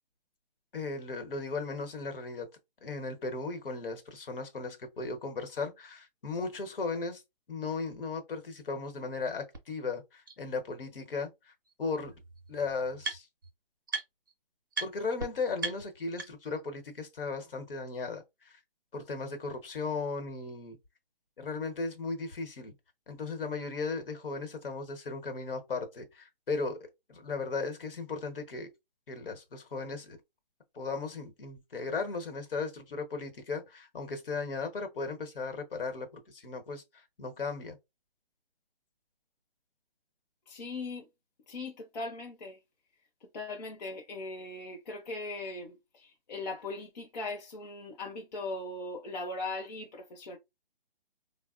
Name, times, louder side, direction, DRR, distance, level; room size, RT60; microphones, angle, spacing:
voice 1, 0.7-2.5 2.8-7.2 7.5-11.5 11.8-12.2 12.5-13.3 14.8-18.6 18.9-20.8 21.4-22.7 23.1-28.7 29.1-30.2 30.7-37.8, left 4 dB, 65° left, 1.0 m, -36 dB
sound 1, 9.5-9.6 10.3-10.4 11.7-11.8 12.0-13.5 13.9-14.3 14.7-14.9 15.2-15.3 15.6-16.6, right 4 dB, 20° right, 0.4 m, -38 dB
voice 2, 40.5-41.1 41.5-42.6 43.2-50.4, left 2 dB, 45° left, 0.6 m, -39 dB
3.5 x 2.0 x 2.4 m
hypercardioid pair, 155°, 30 cm